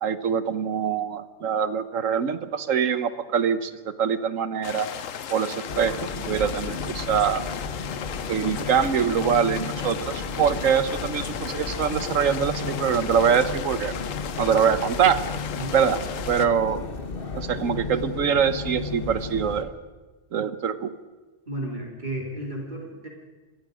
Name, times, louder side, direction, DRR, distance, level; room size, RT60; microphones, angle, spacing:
voice 1, 0.0-4.9 5.3-7.4 8.3-13.9 14.4-15.2 15.7-16.0 16.3-16.8 17.4-19.7 20.3-20.9, right 7 dB, 80° right, 13 dB, 1.4 m, -24 dB
sound 1, 4.6-16.5, left 8 dB, 80° left, 1.3 m, -35 dB
sound 2, 5.7-19.6, left 4 dB, 45° left, 1.5 m, -34 dB
voice 2, 14.5-14.8 15.5-15.8 21.5-23.1, right 1 dB, 35° right, -2 dB, 3.3 m, -33 dB
27.5 x 18.5 x 5.1 m, 1.3 s
omnidirectional pair, 1.3 m